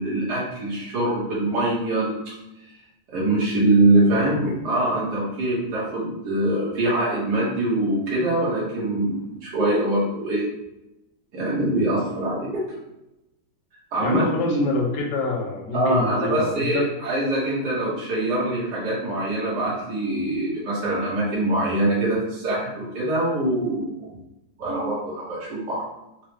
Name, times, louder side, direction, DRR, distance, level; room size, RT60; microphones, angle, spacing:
voice 1, 0.0-2.2 3.1-10.5 11.3-12.8 13.9-14.7 15.7-24.1 24.6-25.8, right 1 dB, 75° right, -7 dB, 1.6 m, -23 dB
voice 2, 14.0-16.8, left 4 dB, 70° left, 1 dB, 1.3 m, -26 dB
4.6 x 2.1 x 3.1 m, 0.89 s
omnidirectional pair, 1.8 m